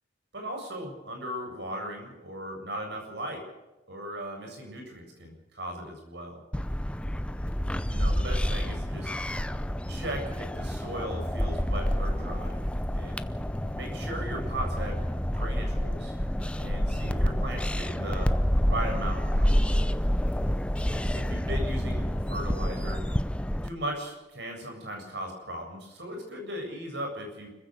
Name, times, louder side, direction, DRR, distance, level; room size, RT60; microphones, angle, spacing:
voice 1, 0.3-3.4 3.9-6.4 7.9-9.1 9.9-12.6 12.9-13.2 13.7-15.0 15.3-16.2 16.6-18.3 18.7-19.5 20.9-23.0 23.6-27.5, right 1 dB, 65° right, 2 dB, 7.8 m, -37 dB
sound 1, 6.5-23.7, equal, 5° left, 0.6 m, -28 dB
30.0 x 15.5 x 6.6 m, 1.1 s
head